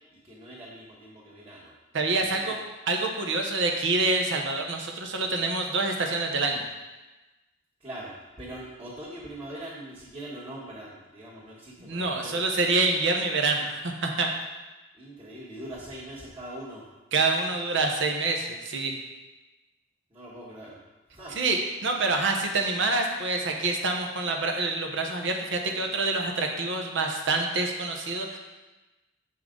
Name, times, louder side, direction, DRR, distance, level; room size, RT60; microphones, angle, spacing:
voice 1, 0.3-1.7 2.2-2.5 7.8-12.4 15.0-16.8 20.1-20.8 21.1-21.3, right 1 dB, 25° right, -10 dB, 1.6 m, -42 dB
voice 2, 1.9-2.6 2.9-6.6 11.8-14.3 17.1-18.9 21.3-28.4, right 3 dB, 65° right, 3 dB, 1.0 m, -26 dB
7.7 x 5.5 x 3.8 m, 1.1 s
head